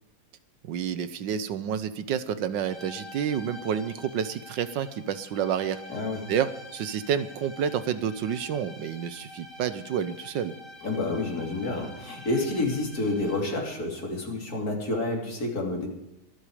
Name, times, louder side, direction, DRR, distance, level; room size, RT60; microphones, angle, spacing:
voice 1, 0.6-5.8 6.3-10.6, right 8 dB, 75° right, 13 dB, 1.4 m, -29 dB
sound 1, 2.6-13.7, left 2 dB, 30° left, 2.2 m, -47 dB
voice 2, 5.9-6.2 10.8-15.9, left 2 dB, 50° left, 1 dB, 3.5 m, -29 dB
23.5 x 8.1 x 5.0 m, 0.88 s
omnidirectional pair, 2.0 m